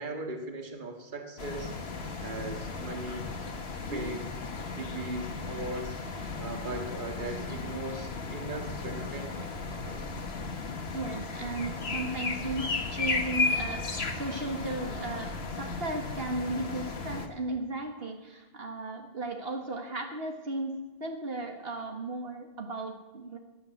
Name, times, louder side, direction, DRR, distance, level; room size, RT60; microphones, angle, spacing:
voice 1, 0.0-1.7 2.2-3.3 3.8-4.4 4.7-6.0 6.4-9.5 9.9-10.0, right 2 dB, 50° right, 4 dB, 2.0 m, -38 dB
sound 1, 1.4-17.3, left 3 dB, 80° left, 1.7 m, -35 dB
voice 2, 3.9-4.2 10.9-23.4, right 2 dB, 70° right, 3 dB, 2.0 m, -36 dB
17.0 x 10.5 x 7.9 m, 1.2 s
omnidirectional pair, 1.0 m